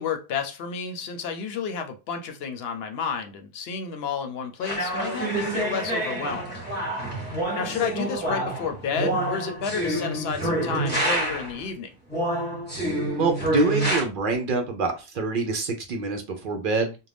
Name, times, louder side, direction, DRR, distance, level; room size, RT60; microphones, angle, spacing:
voice 1, 0.0-6.5 7.5-11.9, left 6 dB, 70° left, 0.8 m, -31 dB
sound 1, 4.6-11.6 12.1-14.0, right 1 dB, 10° left, 1.2 m, -27 dB
voice 2, 13.2-17.0, right 3 dB, 60° right, 0.7 m, -26 dB
2.5 x 2.1 x 3.3 m
omnidirectional pair, 1.1 m